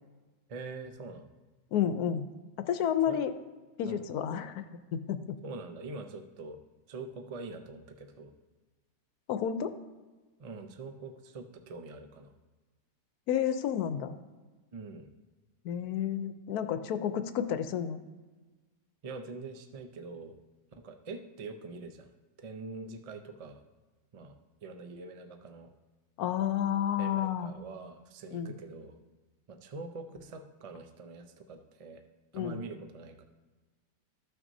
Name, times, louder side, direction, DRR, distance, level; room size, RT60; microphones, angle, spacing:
voice 1, 0.5-1.3 3.1-3.2 3.9-4.1 5.4-6.6 6.9-8.3 10.4-12.3 14.7-15.1 19.0-20.3 20.8-22.1 22.4-23.6 24.1-25.7 27.0-29.0 29.5-32.0 32.3-33.2, right 3 dB, 50° right, 6 dB, 0.4 m, -44 dB
voice 2, 1.7-2.2 2.6-3.3 3.8-4.6 4.9-5.3 9.3-9.7 13.3-14.1 15.6-18.0 26.2-27.5 28.3-28.5 32.3-32.6, left 9 dB, 80° left, 10 dB, 1.1 m, -30 dB
15.0 x 6.0 x 2.7 m, 1.3 s
omnidirectional pair, 1.6 m